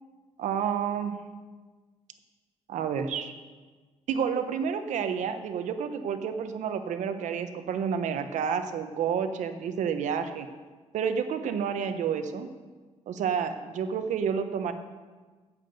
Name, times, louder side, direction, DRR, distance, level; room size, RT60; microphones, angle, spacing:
voice 1, 0.4-1.2 2.7-3.3 4.1-10.5 10.9-12.5 13.1-14.7, right 7 dB, 85° right, 8 dB, 1.0 m, -30 dB
9.1 x 7.5 x 7.9 m, 1.4 s
wide cardioid pair, 175°, 12 cm